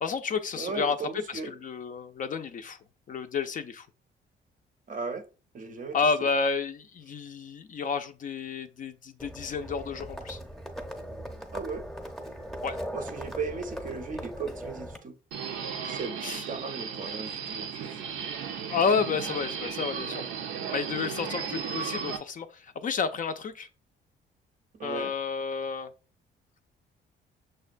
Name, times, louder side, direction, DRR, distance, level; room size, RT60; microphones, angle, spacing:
voice 1, 0.0-1.0 1.3-2.8 3.1-3.9 5.9-10.4 12.6-12.8 16.2-16.4 18.7-20.2 20.7-23.7 24.8-25.9, left 5 dB, 40° left, 0.4 m, -30 dB
voice 2, 0.5-1.5 4.9-5.2 5.5-6.0 11.5-11.8 12.9-15.2 15.8-18.0 24.8-25.1, right 4 dB, 40° right, 0.6 m, -36 dB
Livestock farm animals working animals, 9.2-15.0, equal, ahead, 0.6 m, -39 dB
Subway metro underground, 15.3-22.2, right 7 dB, 90° right, 0.5 m, -35 dB
6.1 x 2.2 x 2.4 m
cardioid pair, 90°, 20 cm